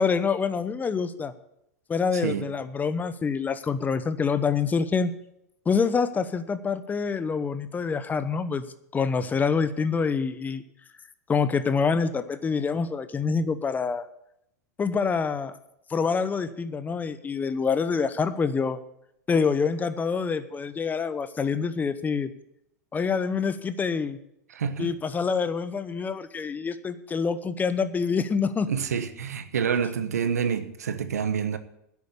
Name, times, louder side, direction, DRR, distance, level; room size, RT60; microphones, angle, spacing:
voice 1, 0.0-1.3 1.9-5.1 5.7-8.6 8.9-10.6 11.3-14.0 14.8-15.6 15.9-18.8 19.3-22.3 22.9-24.2 24.8-28.7, left 5 dB, 20° left, 0.9 m, -26 dB
voice 2, 2.1-2.5 24.6-24.9 28.7-31.6, right 7 dB, 85° right, 1.0 m, -28 dB
10.5 x 8.4 x 8.4 m
hypercardioid pair, 100°, 8 cm